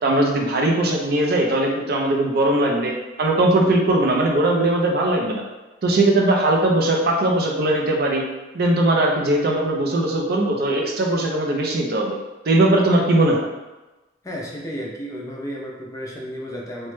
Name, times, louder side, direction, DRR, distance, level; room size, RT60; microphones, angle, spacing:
voice 1, 0.0-5.4 5.8-8.2 8.5-12.2 12.5-13.5, right 1 dB, 50° right, 0 dB, 0.4 m, -19 dB
voice 2, 14.2-16.9, equal, 15° left, -2 dB, 0.4 m, -32 dB
3.0 x 2.1 x 3.1 m, 1.1 s
head